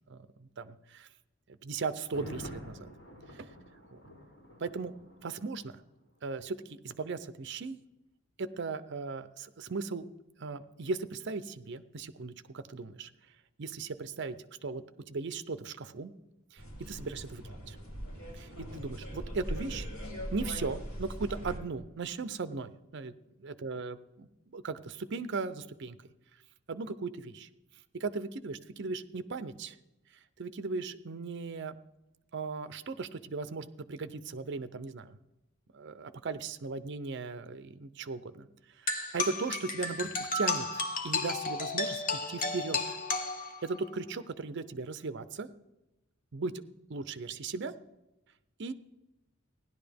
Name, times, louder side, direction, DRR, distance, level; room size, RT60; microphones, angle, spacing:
voice 1, 0.1-1.1 1.5-2.9 3.3-3.5 3.9-4.0 4.6-4.9 5.2-5.8 6.2-7.8 8.4-10.1 10.4-13.1 13.6-14.4 14.6-16.1 16.5-17.8 18.3-19.9 20.3-23.1 23.4-26.1 26.7-27.5 27.9-29.8 30.4-31.8 32.3-35.2 35.7-43.0 43.6-45.5 46.3-46.5 46.9-47.7 48.6-48.7, right 4 dB, 55° right, 13 dB, 0.6 m, -37 dB
Thunder, 2.0-5.9 6.2-6.3, equal, 60° left, 5.7 m, -48 dB
sound 1, 16.6-21.6, equal, 80° left, 3.1 m, -40 dB
sound 2, 38.9-43.9, left 3 dB, 40° left, 0.9 m, -33 dB
16.5 x 11.0 x 3.5 m, 0.95 s
head